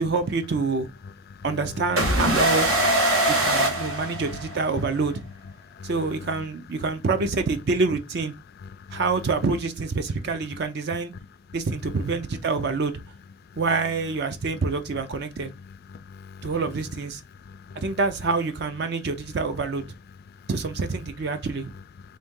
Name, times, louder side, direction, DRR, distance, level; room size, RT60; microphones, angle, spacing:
voice 1, 0.0-0.9 1.4-2.7 3.3-5.2 5.8-8.3 8.9-11.1 11.5-12.9 13.6-15.5 16.4-17.2 17.8-19.8 20.5-21.7, right 4 dB, 50° right, 0.4 m, -26 dB
voice 2, 1.0-2.1 2.7-2.8 3.1-4.4 5.0-5.1 5.6-6.5 6.8-6.9 8.5-9.2 11.8-12.1 13.4-13.6 15.0-15.1 15.4-16.6 17.3-18.0 20.3-20.5 21.7-22.2, left 5 dB, 45° left, 0.3 m, -42 dB
sound 1, 2.0-4.7, right 1 dB, 90° right, 1.7 m, -22 dB
4.1 x 2.7 x 3.6 m
head